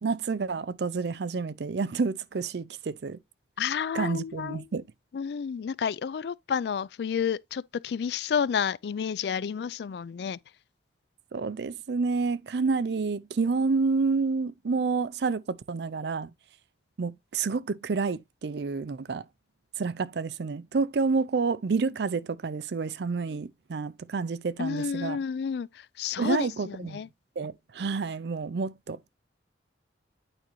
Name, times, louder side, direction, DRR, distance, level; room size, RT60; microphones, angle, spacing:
voice 1, 0.0-3.2 3.9-4.8 11.3-16.3 17.0-19.2 19.8-25.2 26.2-27.0 27.4-29.1, right 4 dB, 65° right, 0.4 m, -29 dB
voice 2, 3.6-4.6 5.1-10.4 24.6-27.1, left 7 dB, 60° left, 0.3 m, -30 dB
8.9 x 5.1 x 3.0 m
head